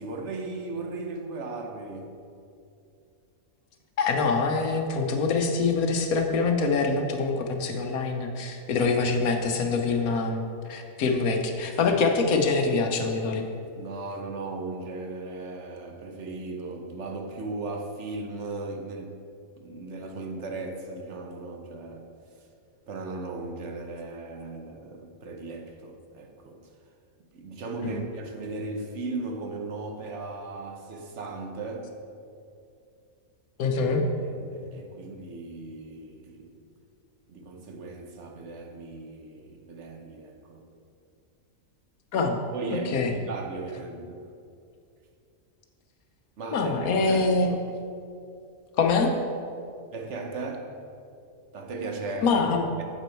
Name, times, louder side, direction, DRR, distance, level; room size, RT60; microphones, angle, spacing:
voice 1, 0.0-2.2 13.7-19.2 19.6-22.1 22.9-26.6 27.3-31.9 33.7-33.8 34.2-36.5 37.3-40.6 42.5-44.2 46.4-47.3 49.9-50.7 51.5-52.3, right 3 dB, 60° right, 3 dB, 1.1 m, -37 dB
voice 2, 4.0-13.4 27.8-28.0 33.6-34.0 42.1-42.4 42.7-43.1 46.5-47.5 48.8-49.1 52.2-52.6, left 4 dB, 80° left, 4 dB, 1.3 m, -25 dB
8.2 x 7.9 x 4.5 m, 2.6 s
omnidirectional pair, 1.5 m